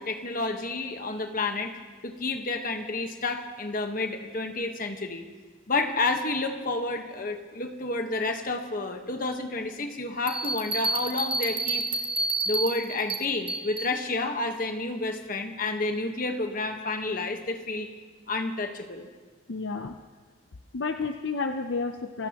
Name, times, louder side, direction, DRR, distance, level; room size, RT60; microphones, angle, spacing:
voice 1, 0.0-5.3 5.7-11.8 12.5-17.9 18.3-19.1, left 3 dB, 45° left, 5 dB, 1.3 m, -30 dB
sound 1, 10.3-13.9, right 3 dB, 25° right, 1.3 m, -29 dB
voice 2, 19.5-20.0 20.7-22.3, left 4 dB, 65° left, 6 dB, 0.6 m, -31 dB
28.0 x 17.0 x 3.0 m, 1.5 s
head